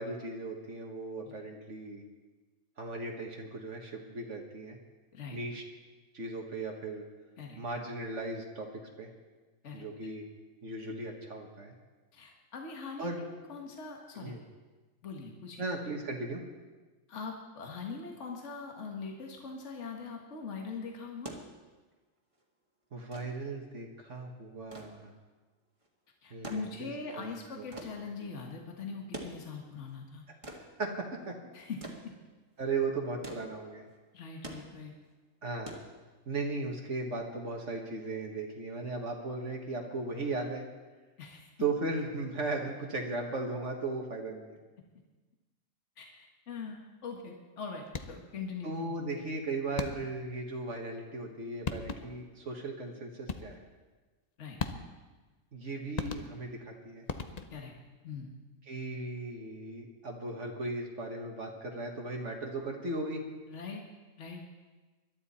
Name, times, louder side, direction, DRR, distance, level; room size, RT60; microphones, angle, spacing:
voice 1, 0.0-2.0 2.8-4.8 5.3-5.6 6.1-7.0 7.6-8.7 9.0-9.1 9.7-10.3 10.6-11.7 13.0-13.2 14.1-14.4 15.6-16.4 22.9-25.1 26.3-26.9 27.1-27.3 27.6-27.7 30.3-30.4 30.8-31.3 32.6-33.8 35.4-35.7 36.2-40.6 41.6-44.6 48.6-53.6 55.5-57.0 58.7-63.2, right 3 dB, 60° right, 1 dB, 1.8 m, -37 dB
voice 2, 12.1-14.3 15.0-15.6 17.1-21.3 26.2-30.2 31.5-31.8 34.1-34.9 41.2-41.5 46.0-46.2 46.5-49.0 54.4-54.6 57.5-57.7 58.0-58.3 63.5-63.8 64.2-64.4, left 4 dB, 60° left, 1 dB, 1.7 m, -42 dB
sound 1, 21.2-36.5 37.7-37.9, right 1 dB, 25° right, 1.8 m, -48 dB
sound 2, 47.9-48.4 49.8-50.3 51.3-51.4 51.7-52.3 53.3-53.7 54.6-55.1 56.0-56.6 57.1-57.8, left 5 dB, 40° left, 0.7 m, -38 dB
21.5 x 12.0 x 4.3 m, 1.3 s
omnidirectional pair, 1.4 m